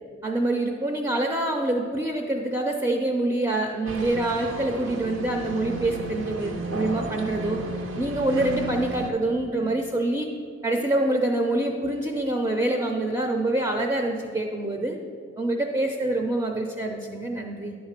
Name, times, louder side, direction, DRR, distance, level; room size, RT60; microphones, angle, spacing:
voice 1, 0.2-7.6 8.0-10.3 10.6-15.0 15.4-17.7, right 2 dB, 15° right, 2 dB, 0.4 m, -26 dB
sound 1, 3.9-9.1, right 1 dB, 85° right, 0.8 m, -34 dB
10.5 x 4.0 x 6.6 m, 2.5 s
head